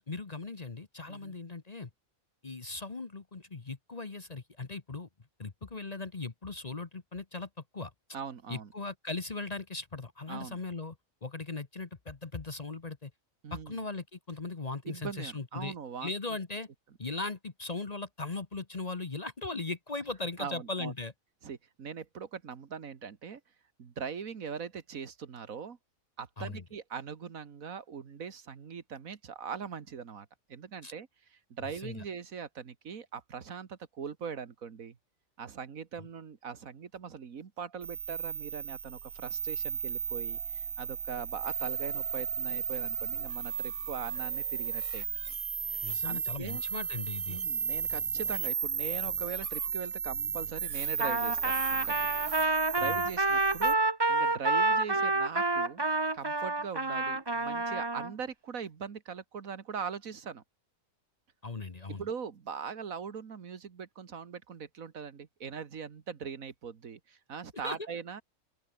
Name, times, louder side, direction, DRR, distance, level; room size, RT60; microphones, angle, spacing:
voice 1, 0.0-1.9 2.4-5.1 5.4-7.9 8.5-10.9 11.2-13.1 13.5-15.7 16.0-16.7 17.0-21.1 26.4-26.6 30.8-30.9 31.8-32.0 36.0-36.1 45.8-47.4 52.8-53.1 61.4-62.0 67.6-67.8, left 3 dB, 30° left, 1.1 m, -38 dB
voice 2, 8.1-8.7 10.3-10.6 13.4-13.8 14.9-16.4 20.4-20.9 21.4-23.4 23.8-25.8 26.2-31.1 31.5-35.0 35.4-45.1 46.1-46.6 47.3-52.1 52.8-55.8 56.1-60.4 61.9-68.2, right 6 dB, 75° right, 1.9 m, -41 dB
sound 1, 37.8-53.7, right 7 dB, 55° right, 0.4 m, -34 dB
Trumpet, 51.0-58.1, right 3 dB, 20° right, 1.1 m, -28 dB
open air
omnidirectional pair, 1.5 m